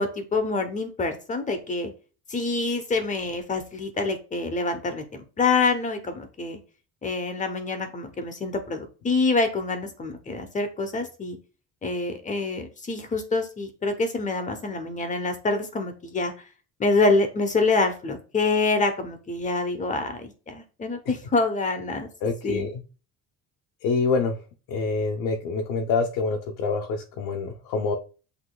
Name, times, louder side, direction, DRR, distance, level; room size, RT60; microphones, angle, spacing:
voice 1, 0.0-1.9 2.3-6.6 7.0-11.4 11.8-16.3 16.8-22.1 22.4-22.7, left 3 dB, 20° left, 7 dB, 0.8 m, -26 dB
voice 2, 22.2-22.8 23.8-24.4 24.7-28.0, left 4 dB, 65° left, 2 dB, 0.8 m, -26 dB
8.2 x 2.8 x 2.2 m, 0.36 s
cardioid pair, 140°, 35 cm